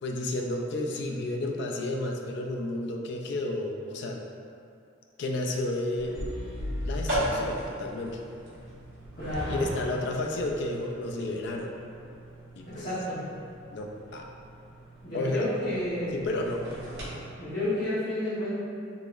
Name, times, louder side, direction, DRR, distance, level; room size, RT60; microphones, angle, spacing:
voice 1, 0.0-4.2 5.2-6.1 6.8-8.2 9.5-11.7 12.6-12.9 13.7-14.3 15.1-15.5 16.1-16.6, left 2 dB, 60° left, 1 dB, 0.3 m, -31 dB
sound 1, 6.0-17.1, equal, 70° right, 1.2 m, -37 dB
voice 2, 9.2-9.6 12.7-13.2 15.0-16.1 17.4-18.5, left 1 dB, 45° left, -15 dB, 1.0 m, -31 dB
3.9 x 2.9 x 2.4 m, 2.4 s
head